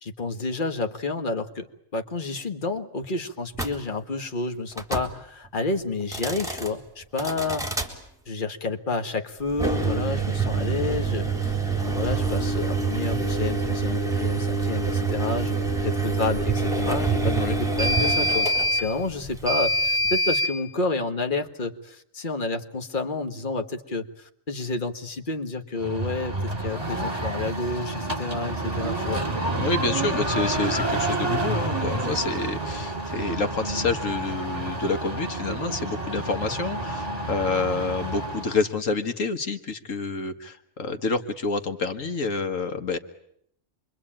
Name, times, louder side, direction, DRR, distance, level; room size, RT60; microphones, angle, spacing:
voice 1, 0.0-7.8 8.3-29.3, left 3 dB, 40° left, 8 dB, 1.7 m, -30 dB
sound 1, 3.5-3.7 4.7-5.1 6.0-6.7 7.2-7.9 9.5-20.5, right 2 dB, ahead, 3.8 m, -25 dB
sound 2, 25.8-38.6, right 2 dB, 30° right, 2.8 m, -29 dB
voice 2, 29.6-43.0, left 3 dB, 80° left, 8 dB, 1.9 m, -28 dB
28.0 x 23.5 x 8.9 m, 0.72 s
omnidirectional pair, 1.3 m